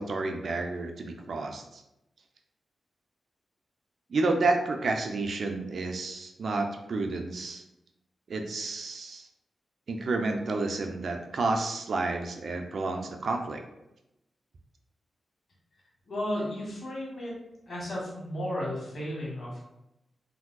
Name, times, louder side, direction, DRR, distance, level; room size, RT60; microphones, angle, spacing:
voice 1, 0.0-1.8 4.1-7.6 8.3-9.3 9.9-13.6, right 3 dB, 70° right, 3 dB, 0.4 m, -30 dB
voice 2, 16.1-17.3 17.7-19.6, left 1 dB, 60° left, -5 dB, 1.4 m, -34 dB
3.5 x 2.6 x 2.2 m, 0.89 s
cardioid pair, 50°, 0 cm